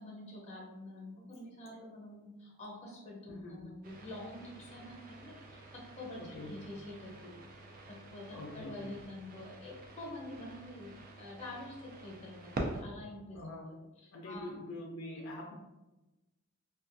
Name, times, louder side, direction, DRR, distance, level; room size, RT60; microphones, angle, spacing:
voice 1, 0.0-7.5 7.9-10.9 11.2-13.4 14.2-14.6, left 1 dB, 30° left, -3 dB, 0.7 m, -47 dB
voice 2, 3.3-3.6 6.2-6.6 8.3-8.9 13.3-13.7 14.1-15.6, left 1 dB, 65° left, -2 dB, 0.4 m, -44 dB
sound 1, 3.8-12.8, right 2 dB, 40° right, 0.4 m, -46 dB
2.4 x 2.2 x 2.5 m, 1.0 s
head